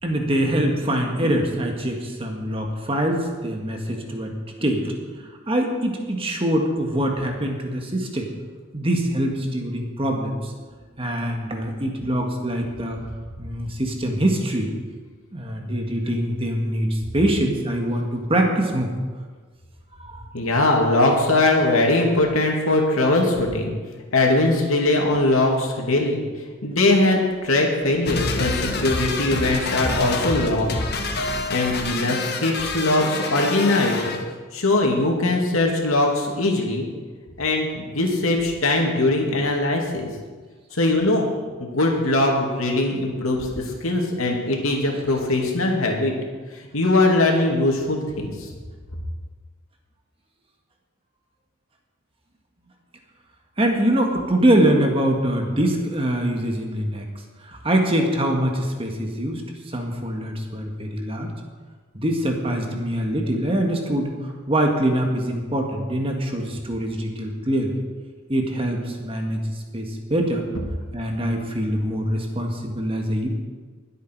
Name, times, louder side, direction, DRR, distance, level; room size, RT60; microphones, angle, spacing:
voice 1, 0.0-4.3 4.6-4.9 5.5-8.3 8.7-10.5 11.0-13.0 13.4-14.7 15.3-18.9 20.0-20.2 53.6-57.0 57.4-61.3 61.9-67.8 68.3-70.4 70.9-73.3, right 1 dB, 25° right, 2 dB, 1.7 m, -24 dB
voice 2, 20.3-23.7 24.1-26.2 26.6-30.8 31.5-34.1 34.5-36.9 37.4-40.1 40.7-41.3 41.6-46.1 46.5-48.5, left 2 dB, 80° left, 0 dB, 2.5 m, -21 dB
sound 1, 28.1-34.2, left 3 dB, 50° left, 1.4 m, -27 dB
21.0 x 8.3 x 4.7 m, 1.5 s
head